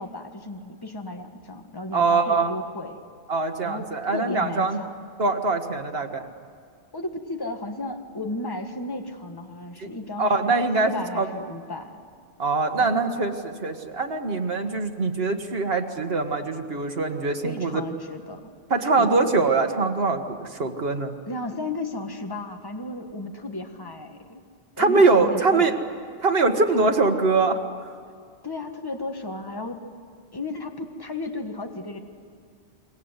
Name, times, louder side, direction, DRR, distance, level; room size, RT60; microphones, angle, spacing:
voice 1, 0.0-3.0 3.6-4.9 6.9-10.5 10.8-12.0 12.8-13.0 17.4-18.5 19.0-19.3 21.3-24.4 24.8-25.6 26.7-26.9 28.4-29.9 30.3-32.0, left 2 dB, 20° left, 5 dB, 1.6 m, -34 dB
voice 2, 1.9-2.5 3.3-4.8 5.2-6.2 9.8-9.9 10.2-11.3 12.4-17.8 18.7-21.1 24.8-25.7 26.2-27.6, right 3 dB, 70° right, 5 dB, 1.8 m, -23 dB
28.5 x 23.0 x 8.1 m, 2.2 s
omnidirectional pair, 1.0 m